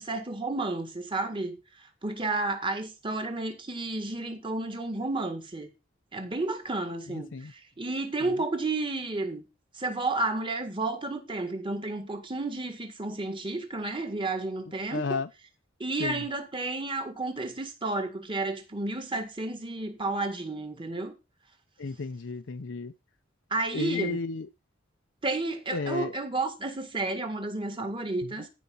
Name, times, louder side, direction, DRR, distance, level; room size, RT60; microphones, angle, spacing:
voice 1, 0.0-1.6 2.0-5.7 6.1-9.4 9.8-15.2 15.8-21.1 23.5-24.2 25.2-28.5, right 2 dB, 25° right, 1.8 m, -31 dB
voice 2, 7.1-7.5 8.2-8.3 14.9-15.3 16.0-16.2 21.8-22.9 23.7-24.5 25.7-26.1, left 4 dB, 65° left, 0.6 m, -32 dB
14.5 x 5.1 x 5.5 m
head